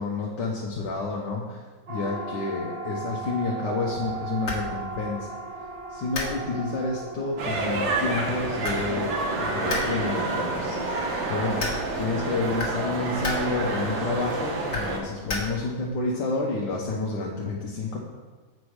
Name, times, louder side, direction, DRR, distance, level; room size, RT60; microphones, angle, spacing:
voice 1, 0.0-1.6 1.9-5.3 5.9-11.6 12.0-18.0, left 3 dB, 65° left, -3 dB, 1.5 m, -29 dB
Siren, 1.9-16.2, right 3 dB, 55° right, 1.4 m, -40 dB
sound 1, 3.9-15.9, left 3 dB, 45° left, 1.7 m, -37 dB
sound 2, 7.4-15.0, right 2 dB, 70° right, 1.7 m, -28 dB
7.6 x 5.2 x 4.8 m, 1.4 s
omnidirectional pair, 2.1 m